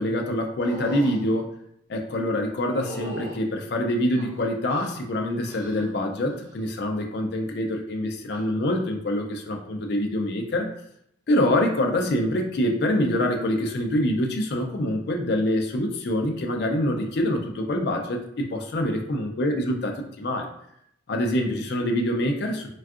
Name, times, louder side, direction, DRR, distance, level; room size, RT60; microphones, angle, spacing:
voice 1, 0.0-1.5 1.9-10.7 11.3-20.5 21.1-22.7, left 1 dB, 55° left, 3 dB, 0.4 m, -25 dB
sound 1, 0.6-1.2 2.6-3.4 4.2-5.0 5.5-5.9 6.3-6.7 8.2-8.4, right 1 dB, 85° right, 0.7 m, -39 dB
3.4 x 2.3 x 2.4 m, 0.74 s
head